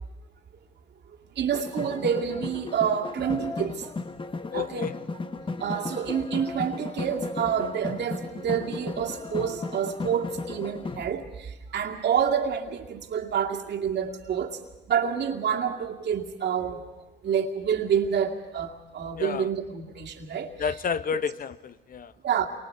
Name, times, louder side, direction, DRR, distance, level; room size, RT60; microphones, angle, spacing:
voice 1, 1.4-3.9 4.5-4.9 5.6-14.6 14.9-16.9 17.2-20.5 21.1-21.2 22.2-22.5, right 7 dB, 65° right, 2 dB, 2.3 m, -28 dB
sound 1, 1.5-11.1, left 3 dB, 25° left, 1.1 m, -35 dB
voice 2, 4.5-4.9 19.2-19.5 20.6-22.1, left 6 dB, 50° left, 15 dB, 0.9 m, -30 dB
29.0 x 24.5 x 4.6 m, 1.0 s
supercardioid pair, 70°, 19 cm